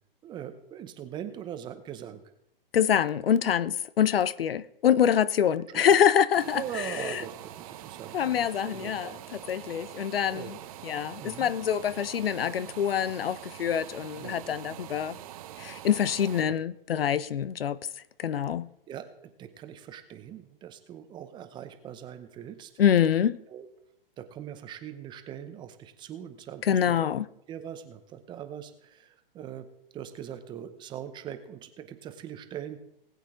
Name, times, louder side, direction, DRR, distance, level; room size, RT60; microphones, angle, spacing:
voice 1, 0.2-2.2 5.7-5.8 6.5-9.2 10.3-10.5 11.2-11.5 14.2-14.4 16.4-16.6 18.9-19.1 19.4-22.7 23.5-23.7 24.2-27.1 27.5-29.7 29.9-32.8, right 10 dB, 15° right, 0.8 m, -41 dB
voice 2, 2.7-7.2 8.1-9.2 9.5-10.6 10.8-15.2 15.6-17.8 18.2-18.7 22.8-23.4 26.6-27.2, left 9 dB, 75° left, 0.7 m, -25 dB
sound 1, 6.3-16.4, right 12 dB, 40° right, 0.9 m, -44 dB
19.0 x 8.3 x 3.7 m
hypercardioid pair, 135°, 29 cm